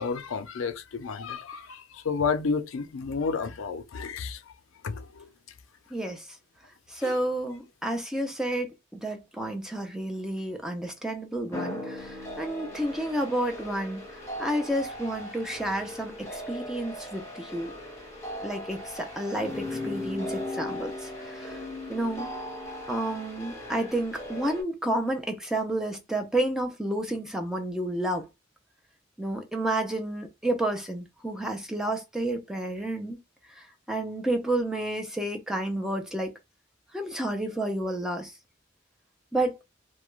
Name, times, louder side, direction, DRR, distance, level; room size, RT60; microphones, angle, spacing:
voice 1, 0.0-4.4 4.8-5.3 7.0-7.1, left 5 dB, 75° left, 0.5 m, -31 dB
voice 2, 5.9-6.3 6.9-14.1 14.4-17.7 18.4-21.6 21.9-22.3 22.9-28.3 29.2-33.2 33.6-36.4 36.9-38.3 39.3-39.6, right 1 dB, 5° right, 0.5 m, -30 dB
sound 1, 11.5-24.6, left 1 dB, 15° left, 1.0 m, -38 dB
2.3 x 2.2 x 3.0 m
head